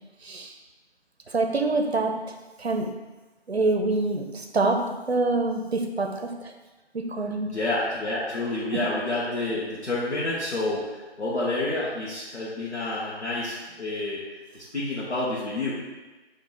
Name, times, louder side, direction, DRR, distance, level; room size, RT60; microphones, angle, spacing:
voice 1, 0.2-0.5 1.3-2.2 2.6-2.9 3.5-6.3 6.9-7.5, right 3 dB, 70° right, 4 dB, 0.6 m, -25 dB
voice 2, 7.5-14.2 14.5-15.7, left 2 dB, 80° left, -9 dB, 1.3 m, -29 dB
4.4 x 2.9 x 3.9 m, 1.2 s
figure-of-eight pair, 175°, 33 cm